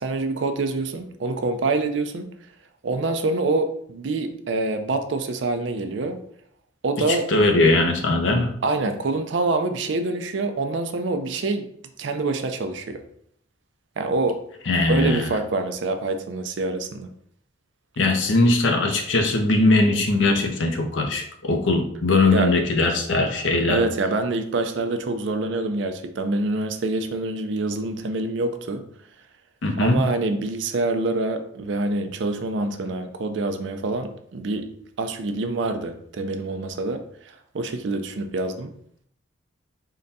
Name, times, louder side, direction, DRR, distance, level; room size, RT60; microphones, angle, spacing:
voice 1, 0.0-2.3 2.8-6.2 6.8-7.3 8.6-11.7 12.0-13.0 14.0-14.4 14.9-17.1 22.3-22.5 23.7-28.8 29.8-34.7 35.0-37.0 37.5-38.7, right 3 dB, 65° right, 7 dB, 0.4 m, -26 dB
voice 2, 7.1-8.5 14.7-15.2 18.0-23.8 29.6-30.0, left 2 dB, 75° left, 4 dB, 0.6 m, -20 dB
3.7 x 2.2 x 4.0 m, 0.67 s
head